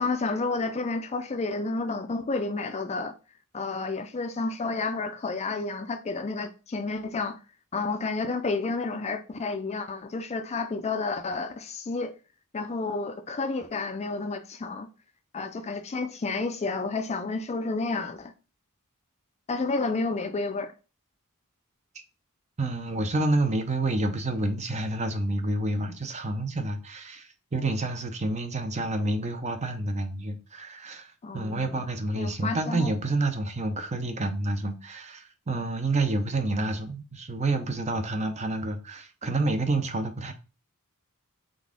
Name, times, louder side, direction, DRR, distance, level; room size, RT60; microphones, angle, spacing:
voice 1, 0.0-3.1 3.5-7.4 7.7-12.1 12.5-14.9 15.3-18.3 19.5-20.7 31.2-31.8 32.2-32.9, left 3 dB, 30° left, 0.4 m, -30 dB
voice 2, 22.6-40.3, right 2 dB, 30° right, 0.6 m, -29 dB
3.9 x 3.5 x 3.6 m
head